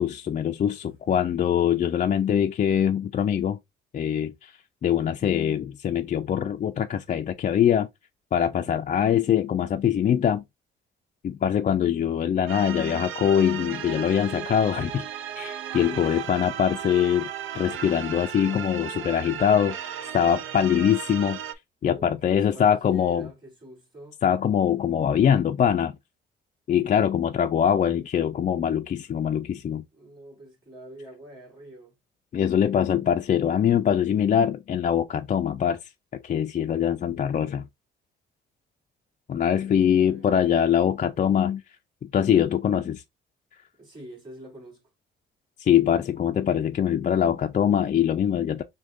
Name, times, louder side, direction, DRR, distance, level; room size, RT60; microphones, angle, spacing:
voice 1, 0.0-3.6 3.9-4.5 4.8-7.9 8.3-10.4 11.2-15.0 15.4-17.3 17.5-21.4 21.8-23.3 24.2-26.0 26.7-29.8 32.3-35.8 36.2-37.6 39.3-41.6 42.0-43.0 45.6-48.6, left 9 dB, 40° left, 0.4 m, -23 dB
sound 1, 12.5-21.5, right 9 dB, 80° right, 0.6 m, -35 dB
voice 2, 21.8-24.2 29.9-32.0 39.5-40.4 43.8-44.8, right 1 dB, 25° right, 3.0 m, -46 dB
6.1 x 2.2 x 2.5 m
cardioid pair, 90°, 20 cm